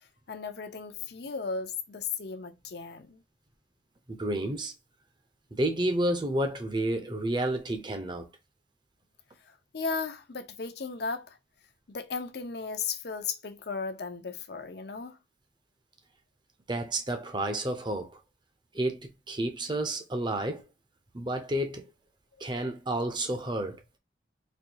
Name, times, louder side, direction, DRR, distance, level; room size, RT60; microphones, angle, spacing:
voice 1, 0.3-3.2 9.5-11.4 11.9-15.2 22.4-22.5, left 5 dB, 55° left, 0.6 m, -36 dB
voice 2, 4.1-4.7 5.5-8.3 16.7-18.2 18.7-20.7 21.1-21.9 22.4-23.8, right 1 dB, 25° right, 0.7 m, -30 dB
4.3 x 2.7 x 2.7 m
head